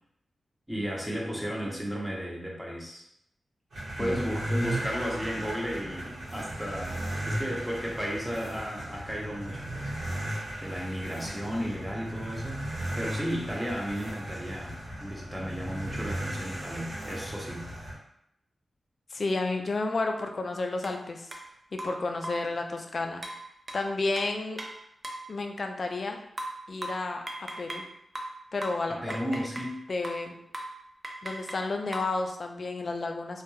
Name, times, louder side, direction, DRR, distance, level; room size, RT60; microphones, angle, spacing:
voice 1, 0.7-3.0 4.0-9.9 10.6-17.7 28.9-29.8, equal, 5° right, -3 dB, 0.8 m, -34 dB
sound 1, 3.7-18.0, right 1 dB, 80° right, 0.9 m, -36 dB
voice 2, 19.1-21.3 21.7-23.2 23.7-24.6 25.3-26.2 26.7-27.8 28.5-29.0 29.3-29.4 29.9-30.4 31.2-33.4, left 3 dB, 55° left, 4 dB, 0.3 m, -31 dB
sound 2, 20.8-21.0 21.3-21.4 21.8-22.5 23.2-25.3 26.4-27.9 28.1-29.8 30.0-30.3 30.5-30.8 31.0-32.2, right 1 dB, 35° right, 0.4 m, -39 dB
2.3 x 2.1 x 3.0 m, 0.77 s
cardioid pair, 70°, 0 cm